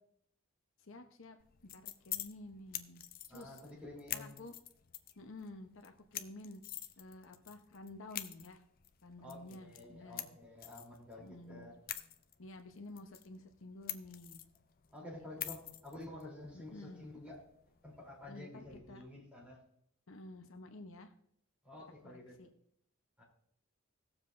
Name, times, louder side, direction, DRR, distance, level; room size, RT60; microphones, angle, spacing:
voice 1, 0.8-1.4 1.7-3.0 3.3-3.6 4.1-4.6 5.2-6.6 7.0-8.6 9.0-10.4 11.2-11.7 12.4-14.4 15.0-15.7 16.5-17.0 18.3-19.0 20.1-21.1 22.0-22.5, left 2 dB, 70° left, 5 dB, 0.9 m, -51 dB
sound 1, 1.4-18.3, left 12 dB, 45° left, 0.6 m, -48 dB
voice 2, 3.3-4.3 9.2-11.7 14.9-17.4 17.8-19.6 21.6-22.3 23.2-23.3, left 1 dB, 5° right, -4 dB, 3.4 m, -50 dB
18.5 x 7.3 x 2.6 m, 0.71 s
head